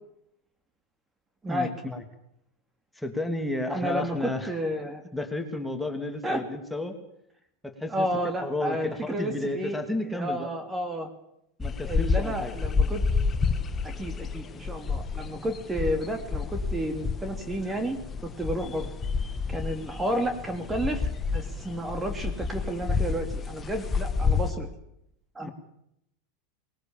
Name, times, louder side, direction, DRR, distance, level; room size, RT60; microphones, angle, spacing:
voice 1, 1.5-2.0 3.0-4.5 5.1-7.0 7.6-8.1 8.4-10.5 11.6-12.5 18.6-18.7 25.4-25.5, left 2 dB, 5° left, 4 dB, 2.9 m, -32 dB
voice 2, 3.7-5.0 6.2-6.4 7.9-9.8 10.1-11.1 11.9-13.0 13.8-18.0 18.2-18.9 19.5-24.7 25.3-25.5, right 1 dB, 15° right, 7 dB, 2.7 m, -31 dB
sound 1, 11.6-24.5, left 5 dB, 25° left, 1.8 m, -29 dB
20.5 x 18.0 x 7.4 m, 0.76 s
hypercardioid pair, 110°, 0 cm